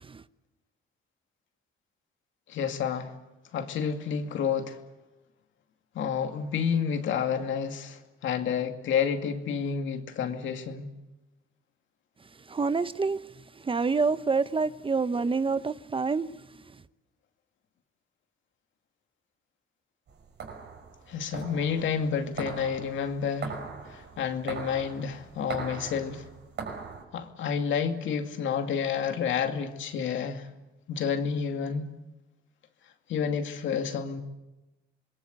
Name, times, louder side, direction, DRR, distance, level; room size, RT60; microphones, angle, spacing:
voice 1, 2.5-3.1 3.5-4.8 5.9-10.9 21.1-23.6 23.9-26.2 27.1-30.5 30.9-31.9 33.1-34.2, left 7 dB, 75° left, 2.4 m, -30 dB
voice 2, 12.5-13.2 13.7-16.3, right 4 dB, 25° right, 0.9 m, -27 dB
sound 1, 20.1-27.0, right 5 dB, 60° right, 5.6 m, -41 dB
27.0 x 21.5 x 8.2 m
cardioid pair, 90°, 20 cm